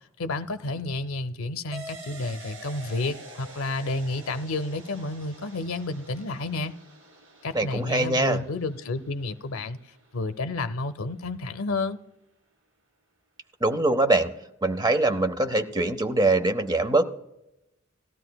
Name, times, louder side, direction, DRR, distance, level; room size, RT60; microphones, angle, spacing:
voice 1, 0.2-6.7 7.4-9.8 10.1-12.0, left 2 dB, 80° left, 10 dB, 0.6 m, -30 dB
sound 1, 1.7-10.7, right 1 dB, 75° right, 2.0 m, -47 dB
voice 2, 7.5-8.4 13.6-14.3 14.6-17.0, right 2 dB, 20° right, 10 dB, 0.6 m, -23 dB
17.5 x 13.0 x 2.3 m, 0.87 s
head